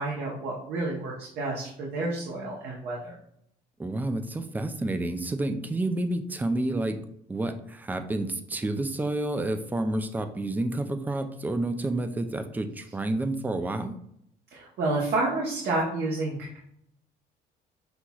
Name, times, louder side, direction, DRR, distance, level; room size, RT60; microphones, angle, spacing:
voice 1, 0.0-3.1 14.5-16.6, right 2 dB, 70° right, -3 dB, 1.0 m, -30 dB
voice 2, 3.8-7.0 7.3-13.9, right 2 dB, 10° right, 8 dB, 0.4 m, -29 dB
6.0 x 2.9 x 2.3 m, 0.72 s
cardioid pair, 110°, 17 cm